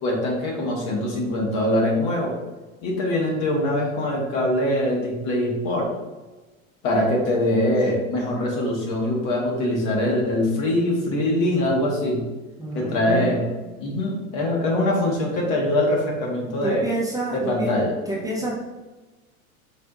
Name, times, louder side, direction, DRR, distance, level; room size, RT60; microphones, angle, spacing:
voice 1, 0.0-2.3 2.8-5.9 6.8-12.2 12.7-13.5 13.8-16.9 17.3-17.9, left 1 dB, 50° left, -2 dB, 1.5 m, -23 dB
voice 2, 12.6-13.7 16.6-17.7 18.1-18.6, right 2 dB, 10° right, -6 dB, 0.8 m, -29 dB
4.8 x 3.4 x 2.5 m, 1.2 s
hypercardioid pair, 90°, 42 cm